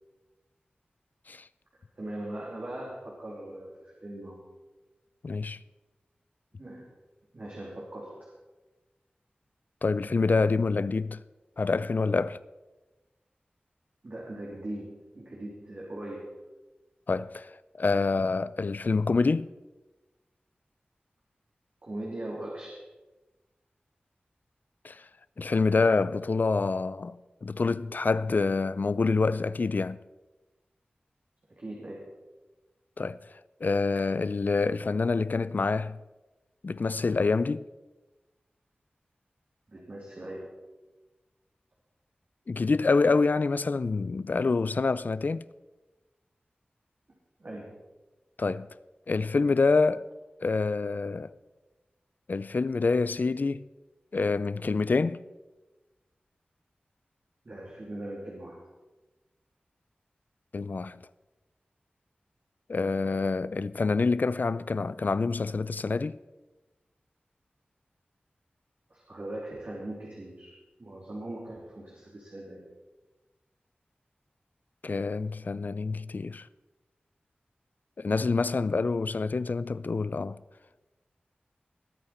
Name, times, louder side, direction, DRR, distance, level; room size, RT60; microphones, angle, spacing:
voice 1, 1.9-4.4 6.5-6.9 7.3-8.2 14.0-16.3 21.8-22.8 31.5-32.1 39.7-40.5 47.4-47.8 57.4-58.6 68.9-72.6, right 1 dB, 55° right, 3.1 m, -40 dB
voice 2, 5.2-5.6 9.8-11.2 11.6-12.4 17.1-17.5 17.8-19.5 24.8-25.0 25.4-30.0 33.0-33.2 33.6-36.0 36.6-37.7 42.5-45.5 48.4-48.7 49.1-50.0 50.4-51.3 52.3-53.7 54.1-55.2 60.5-61.0 62.7-66.2 74.8-76.5 78.0-80.4, left 4 dB, 60° left, 0.4 m, -26 dB
19.5 x 8.8 x 4.4 m
wide cardioid pair, 65°, 3 cm